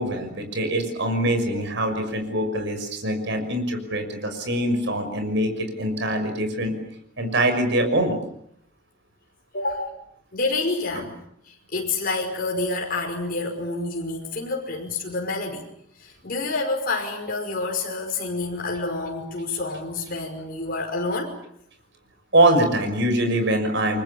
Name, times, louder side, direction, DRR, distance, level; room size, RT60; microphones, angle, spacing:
voice 1, 0.0-6.7 7.2-8.2 10.9-11.1 22.3-24.0, right 1 dB, 65° right, 6 dB, 6.2 m, -23 dB
voice 2, 9.5-9.9 10.3-11.1 11.5-15.7 16.0-21.3, left 3 dB, 50° left, 0 dB, 5.5 m, -28 dB
30.0 x 24.0 x 7.2 m, 0.71 s
head